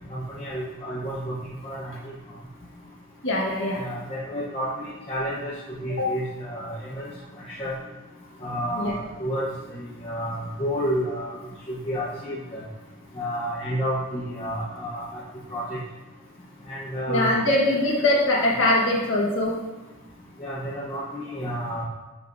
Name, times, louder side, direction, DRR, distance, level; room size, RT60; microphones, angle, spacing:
voice 1, 0.1-1.3 1.6-2.1 3.8-5.5 5.8-7.1 7.5-7.7 8.4-11.3 11.7-12.6 13.2-15.2 15.5-15.8 16.7-17.3 18.0-18.1 20.4-21.8, equal, 25° left, -7 dB, 1.0 m, -30 dB
voice 2, 3.2-3.8 6.0-6.1 8.7-8.9 17.1-19.6, left 1 dB, 55° left, -3 dB, 1.5 m, -22 dB
11.5 x 5.2 x 2.7 m, 1.1 s
head